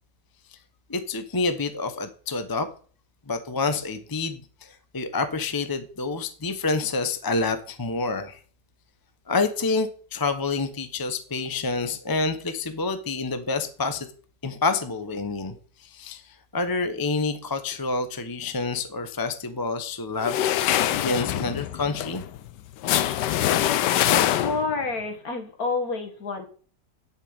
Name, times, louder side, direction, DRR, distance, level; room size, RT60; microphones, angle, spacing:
voice 1, 0.9-2.7 3.3-8.4 9.3-14.1 14.4-15.5 15.8-22.2, left 3 dB, 15° left, 9 dB, 0.8 m, -28 dB
sound 1, 20.2-24.8, left 12 dB, 80° left, 1.3 m, -24 dB
voice 2, 23.8-26.5, left 3 dB, 55° left, 4 dB, 2.5 m, -29 dB
11.5 x 5.8 x 8.8 m, 0.43 s
omnidirectional pair, 1.9 m